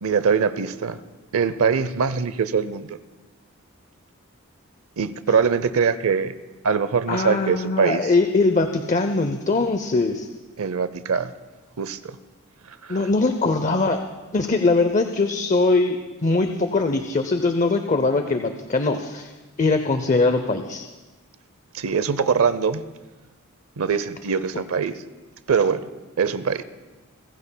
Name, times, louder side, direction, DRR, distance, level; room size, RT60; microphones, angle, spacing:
voice 1, 0.0-1.0 1.3-3.0 5.0-6.3 6.6-8.1 10.6-11.3 11.8-12.2 12.7-13.0 21.7-22.8 23.8-25.0 25.5-25.8 26.2-26.6, right 6 dB, 75° right, 14 dB, 0.6 m, -22 dB
voice 2, 7.1-10.3 12.9-14.0 14.3-19.3 19.6-20.8, left 3 dB, 35° left, 7 dB, 0.6 m, -21 dB
28.0 x 15.5 x 2.3 m, 1.2 s
head